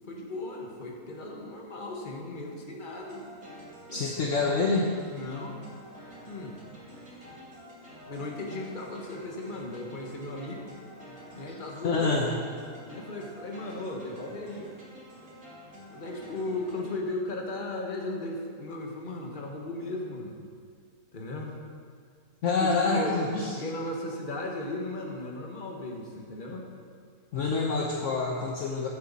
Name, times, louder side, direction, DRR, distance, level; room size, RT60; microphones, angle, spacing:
voice 1, 0.1-3.2 3.9-4.2 5.1-5.6 6.2-6.6 8.1-10.6 11.3-12.4 12.9-14.7 15.9-20.4 21.1-21.6 22.5-23.2 23.4-26.7, left 2 dB, 35° left, 0 dB, 1.5 m, -36 dB
sound 1, 2.9-17.0, equal, 75° right, 3.1 m, -48 dB
voice 2, 3.9-4.9 11.8-12.3 22.4-23.6 27.3-28.9, left 3 dB, 60° left, 0 dB, 1.2 m, -26 dB
14.5 x 8.3 x 4.1 m, 2.1 s
omnidirectional pair, 1.5 m